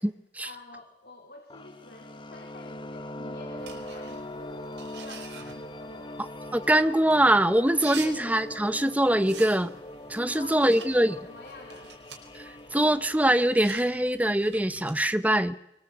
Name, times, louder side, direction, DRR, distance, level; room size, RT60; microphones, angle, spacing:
voice 1, 0.4-6.2 8.0-8.2 10.3-11.9, left 2 dB, 60° left, 1 dB, 3.8 m, -48 dB
sound 1, 1.5-13.5, left 1 dB, 30° left, 1.4 m, -41 dB
sound 2, 3.6-15.1, right 6 dB, 85° right, 5.0 m, -48 dB
voice 2, 6.5-9.7 10.1-11.2 12.4-15.5, right 1 dB, 10° right, 12 dB, 1.0 m, -23 dB
25.0 x 24.0 x 8.1 m, 0.88 s
head